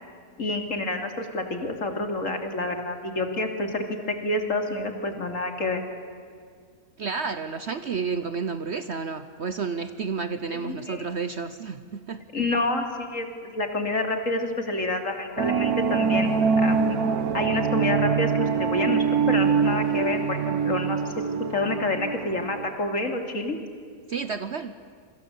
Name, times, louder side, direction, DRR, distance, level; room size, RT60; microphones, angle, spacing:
voice 1, 0.4-5.8 10.5-11.0 12.3-16.3 16.6-17.0 17.3-21.0 21.5-23.6, left 2 dB, 60° left, 5 dB, 3.1 m, -28 dB
voice 2, 7.0-12.2 24.1-24.7, right 5 dB, 55° right, 11 dB, 1.1 m, -31 dB
sound 1, 15.4-22.8, right 6 dB, 85° right, 1.5 m, -24 dB
27.5 x 24.5 x 8.3 m, 2.1 s
omnidirectional pair, 1.5 m